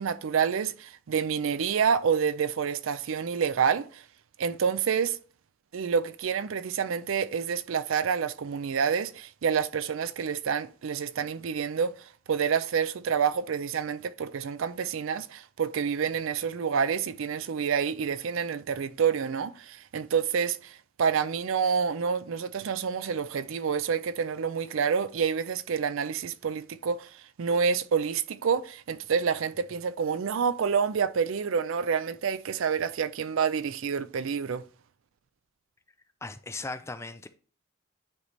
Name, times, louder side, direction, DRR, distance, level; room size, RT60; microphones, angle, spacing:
voice 1, 0.0-4.0 4.4-5.2 5.7-34.6, right 6 dB, 65° right, 0.4 m, -28 dB
voice 2, 36.2-37.3, left 3 dB, 15° left, 0.4 m, -37 dB
9.6 x 3.2 x 4.1 m
head